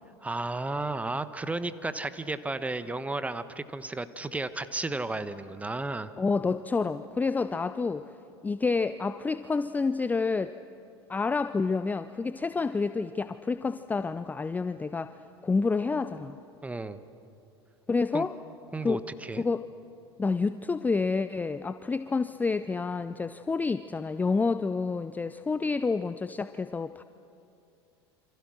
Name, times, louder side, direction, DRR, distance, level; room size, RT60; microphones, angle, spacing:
voice 1, 0.2-6.1 16.6-17.0 18.1-18.2 18.7-19.4, right 2 dB, 10° right, 12 dB, 1.2 m, -33 dB
voice 2, 6.2-8.0 8.4-10.5 11.1-15.1 15.4-16.4 17.9-18.3 18.8-19.0 19.4-19.6 20.2-27.0, left 4 dB, 10° left, 12 dB, 0.6 m, -28 dB
27.5 x 26.0 x 6.4 m, 2.6 s
figure-of-eight pair, 80°, 14 cm